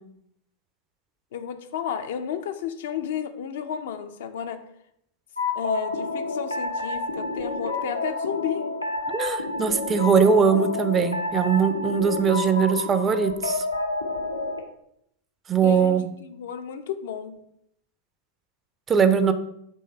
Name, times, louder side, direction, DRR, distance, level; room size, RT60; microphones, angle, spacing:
voice 1, 1.3-4.6 5.5-8.7 15.6-17.3, left 8 dB, 55° left, 8 dB, 0.5 m, -32 dB
sound 1, 5.4-14.6, left 2 dB, 90° left, 0.7 m, -29 dB
voice 2, 9.1-13.6 15.5-16.1 18.9-19.3, right 6 dB, 20° right, 10 dB, 0.5 m, -21 dB
5.4 x 3.2 x 5.5 m, 0.74 s
figure-of-eight pair, 90°, 0 cm